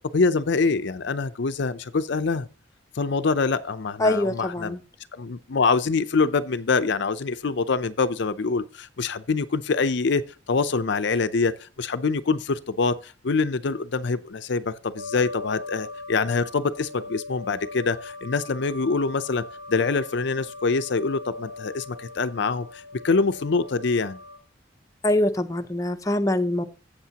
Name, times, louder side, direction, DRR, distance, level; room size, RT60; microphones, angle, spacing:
voice 1, 0.1-2.5 2.9-4.8 5.1-10.2 10.5-24.2, left 4 dB, 65° left, 0.6 m, -25 dB
voice 2, 4.0-4.8 25.0-26.7, left 1 dB, 15° left, 0.7 m, -23 dB
sound 1, 15.0-24.4, left 3 dB, 55° right, 3.8 m, -40 dB
14.0 x 8.1 x 2.9 m
head